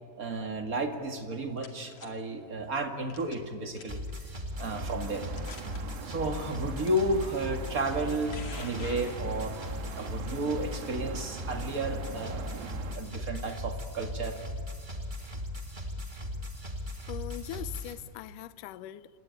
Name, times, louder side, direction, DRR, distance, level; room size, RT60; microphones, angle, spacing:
voice 1, 0.2-4.0 4.6-5.2 6.0-9.6 10.0-12.6 12.9-14.4, right 1 dB, 35° right, 1.4 m, -32 dB
sound 1, 1.2-2.1 3.1-3.5 3.8-4.1 4.8-4.9 5.3-5.8 6.9-7.0 7.9-9.7, left 5 dB, 45° left, 3.0 m, -47 dB
sound 2, 3.9-17.9, left 1 dB, 15° right, 1.8 m, -38 dB
sound 3, 4.5-13.0, right 6 dB, 85° right, 4.0 m, -43 dB
voice 2, 17.1-19.1, left 13 dB, 75° left, 1.9 m, -41 dB
28.0 x 20.0 x 9.5 m
omnidirectional pair, 4.7 m